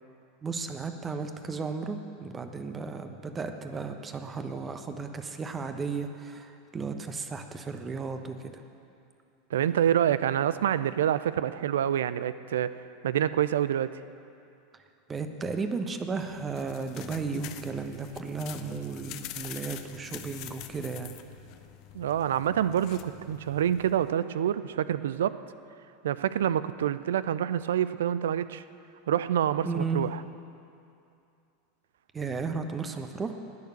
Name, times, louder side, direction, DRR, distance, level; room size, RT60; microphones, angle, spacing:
voice 1, 0.4-8.6 15.1-21.1 29.6-30.0 32.1-33.3, right 4 dB, 20° right, 7 dB, 1.1 m, -34 dB
voice 2, 9.5-12.7 13.0-13.9 21.9-25.4 26.0-28.6 29.1-30.2, right 10 dB, 65° right, 15 dB, 0.4 m, -27 dB
sound 1, 16.2-24.1, left 12 dB, 50° left, 0.8 m, -45 dB
19.5 x 6.9 x 8.0 m, 2.6 s
figure-of-eight pair, 80°, 0 cm